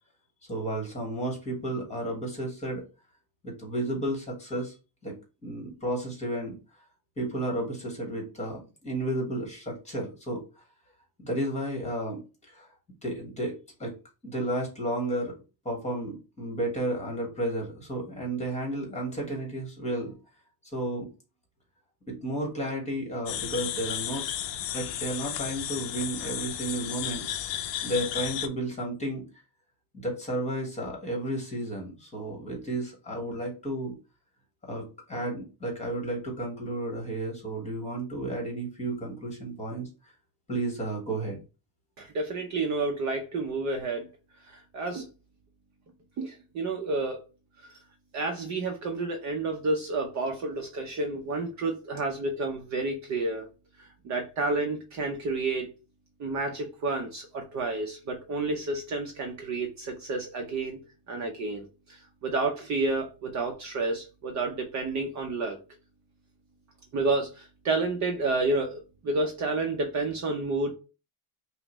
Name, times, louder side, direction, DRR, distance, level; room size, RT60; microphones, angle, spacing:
voice 1, 0.5-2.8 3.4-4.7 5.0-6.6 7.2-10.6 11.2-12.7 13.0-13.9 14.2-15.4 15.6-20.1 20.7-21.1 22.1-24.2 24.7-27.3 27.8-29.2 29.9-34.0 34.6-39.9 40.5-41.4, right 1 dB, 15° left, 1 dB, 1.2 m, -32 dB
sound 1, 23.3-28.5, left 11 dB, 60° left, 0.6 m, -33 dB
voice 2, 42.0-44.1 44.4-45.1 46.2-47.2 47.7-47.8 48.1-53.5 53.8-55.7 56.2-60.8 61.1-65.6 66.9-70.7, right 3 dB, 35° right, 2 dB, 0.6 m, -30 dB
5.5 x 2.1 x 2.9 m, 0.31 s
cardioid pair, 155°, 48 cm